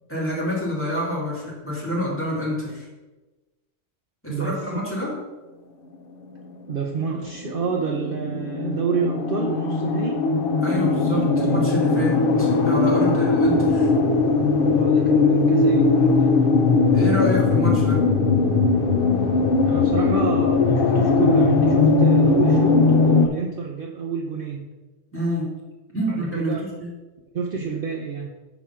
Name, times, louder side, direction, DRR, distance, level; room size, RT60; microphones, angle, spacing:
voice 1, 0.1-2.9 4.2-5.2 10.6-13.9 16.9-18.1 25.1-25.6 25.9-26.9, equal, 10° left, -6 dB, 2.7 m, -27 dB
voice 2, 4.3-4.6 6.7-10.2 13.0-13.3 14.7-16.4 19.7-24.7 26.1-26.6 27.3-28.3, right 5 dB, 55° right, 0 dB, 0.9 m, -29 dB
sound 1, 6.3-23.3, left 3 dB, 55° left, 0.9 m, -19 dB
7.3 x 4.9 x 5.7 m, 1.1 s
omnidirectional pair, 1.2 m